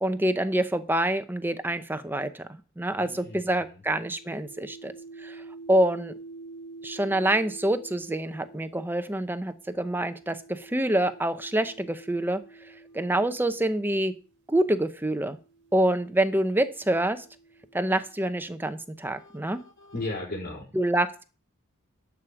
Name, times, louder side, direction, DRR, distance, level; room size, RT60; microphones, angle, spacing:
voice 1, 0.0-4.9 5.2-5.4 5.7-6.1 6.8-12.4 12.9-14.1 14.5-15.4 15.7-17.2 17.7-19.6 20.7-21.2, right 1 dB, 10° right, 9 dB, 0.8 m, -26 dB
voice 2, 3.0-3.8 19.1-20.7, left 2 dB, 45° left, -3 dB, 4.0 m, -37 dB
sound 1, 3.9-14.3 15.2-18.9, right 3 dB, 55° right, 1.5 m, -48 dB
11.5 x 5.1 x 7.1 m, 0.36 s
head